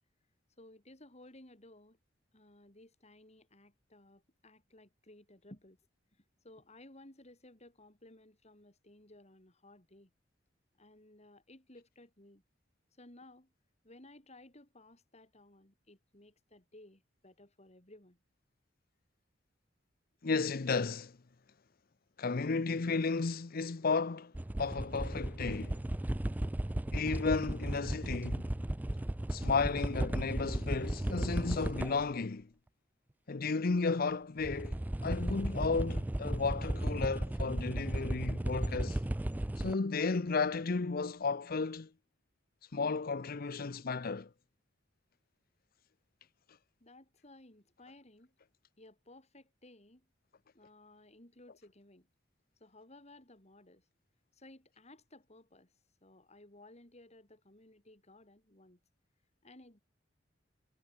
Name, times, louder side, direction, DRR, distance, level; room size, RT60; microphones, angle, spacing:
voice 1, 0.6-2.0 2.3-5.8 6.1-10.1 10.8-12.4 13.0-13.5 13.8-18.2 46.8-48.3 48.8-50.1 50.5-52.1 52.6-53.8 54.3-55.7 56.0-58.8 59.4-59.8, left 1 dB, 35° left, 5.8 m, -58 dB
voice 2, 20.2-21.2 22.2-24.3 24.6-25.8 26.9-28.5 29.3-32.5 33.3-39.0 39.6-41.9 42.7-44.3, left 4 dB, 55° left, 0.7 m, -33 dB
sound 1, 24.3-32.1 34.4-39.7, right 1 dB, 10° right, 0.3 m, -35 dB
head